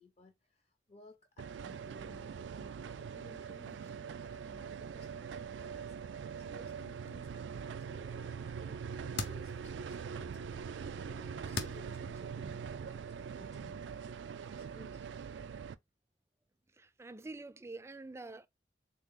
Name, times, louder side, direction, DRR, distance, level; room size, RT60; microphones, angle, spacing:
voice 1, 0.0-14.2 14.6-15.1, left 2 dB, 35° left, 0.5 m, -59 dB
sound 1, 1.4-15.7, right 6 dB, 90° right, 0.3 m, -43 dB
sound 2, 6.4-12.0, left 4 dB, 80° left, 0.7 m, -46 dB
voice 2, 16.7-18.5, right 3 dB, 15° right, 0.3 m, -47 dB
3.6 x 2.8 x 3.6 m
head